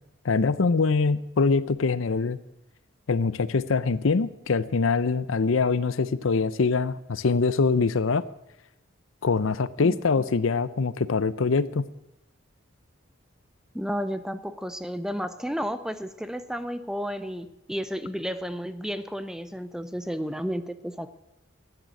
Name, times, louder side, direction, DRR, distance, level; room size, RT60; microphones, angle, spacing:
voice 1, 0.2-2.4 3.1-8.2 9.2-11.9, left 4 dB, 70° left, 16 dB, 0.6 m, -24 dB
voice 2, 9.8-10.2 13.7-21.1, equal, 5° right, 12 dB, 0.6 m, -32 dB
12.0 x 9.1 x 9.3 m, 0.89 s
head